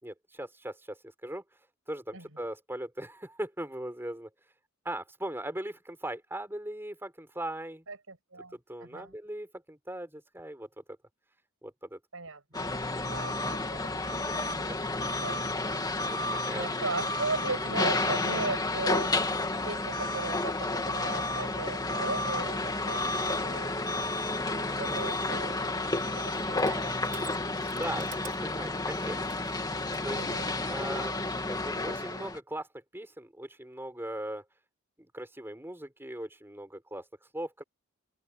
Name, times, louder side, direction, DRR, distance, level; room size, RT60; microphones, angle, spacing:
voice 1, 0.0-4.5 4.8-7.8 8.5-10.8 11.6-12.0 13.0-13.1 13.8-14.0 14.5-14.6 15.0-15.1 16.0-16.7 27.8-29.2 30.0-30.2 30.7-31.2 31.5-34.4 35.1-37.6, right 1 dB, 10° right, 5.5 m, -39 dB
voice 2, 7.9-9.2 12.1-12.4 13.0-13.9 15.2-15.4 16.5-23.9 24.4-25.7 26.0-27.3 30.2-30.6, right 3 dB, 75° right, 7.4 m, -38 dB
sound 1, 12.5-32.4, left 2 dB, 20° left, 2.6 m, -31 dB
Crushing, 26.5-30.1, right 9 dB, 40° right, 5.9 m, -52 dB
open air
head